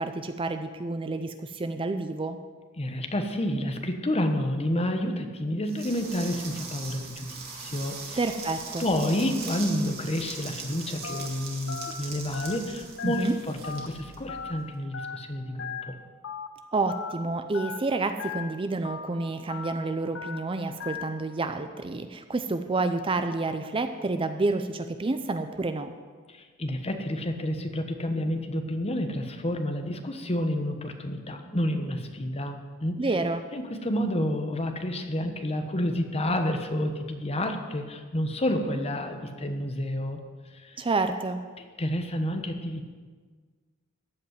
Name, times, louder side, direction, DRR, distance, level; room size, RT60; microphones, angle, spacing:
voice 1, 0.0-2.4 8.2-8.8 13.0-13.3 16.7-25.9 33.0-33.5 40.8-41.4, right 3 dB, 25° right, 9 dB, 0.5 m, -29 dB
voice 2, 2.8-8.2 8.8-15.9 26.3-33.0 33.5-40.2 40.5-40.8 41.8-42.9, left 1 dB, 30° left, 6 dB, 1.1 m, -29 dB
sound 1, 5.7-14.7, right 4 dB, 50° right, 2.4 m, -41 dB
Telephone, 11.0-11.3 11.7-11.9 12.3-12.6 13.0-13.2 13.6-13.9 14.3-14.5 14.9-15.2 15.6-15.8 16.2-16.5 16.9-17.1 17.5-17.8 18.2-18.4 18.8-19.1 19.5-19.7 20.1-20.4 20.8-21.0, left 7 dB, 65° left, 1.0 m, -36 dB
14.5 x 5.3 x 9.5 m, 1.5 s
head